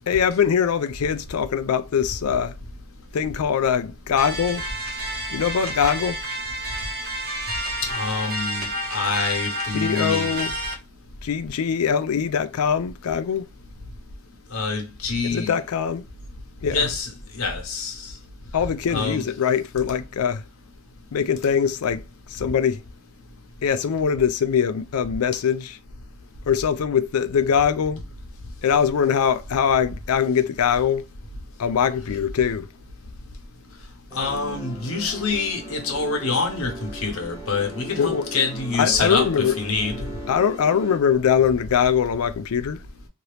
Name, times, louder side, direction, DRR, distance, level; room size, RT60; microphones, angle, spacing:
voice 1, 0.1-2.5 3.1-4.6 5.3-6.2 9.7-10.5 11.2-13.5 15.3-16.0 16.6-16.8 18.5-20.4 21.1-22.0 22.3-22.8 23.6-25.7 26.5-28.0 28.6-31.1 31.6-32.7 38.0-38.2 38.8-39.6 40.3-42.8, left 7 dB, 90° left, 0.4 m, -22 dB
sound 1, 4.2-10.7, right 1 dB, 45° right, 1.1 m, -30 dB
voice 2, 7.8-10.4 14.5-15.5 16.7-17.1 17.4-18.0 18.9-19.2 34.1-40.1, left 4 dB, 70° left, 0.9 m, -26 dB
sound 2, 34.1-41.0, equal, 15° left, 1.2 m, -38 dB
2.9 x 2.6 x 3.2 m
head